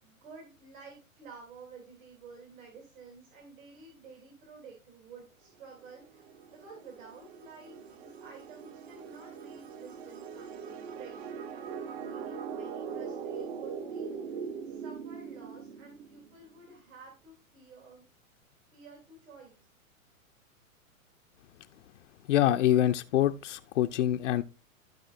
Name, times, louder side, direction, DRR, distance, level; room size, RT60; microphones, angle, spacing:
voice 1, 0.0-11.5 12.0-14.4 14.7-18.1 18.7-19.7, right 4 dB, 65° right, 3.0 m, -51 dB
sound 1, 5.8-16.3, right 6 dB, 50° right, 1.1 m, -41 dB
voice 2, 22.3-24.4, left 12 dB, 60° left, 0.6 m, -25 dB
14.5 x 5.0 x 2.5 m
hypercardioid pair, 115°, 42 cm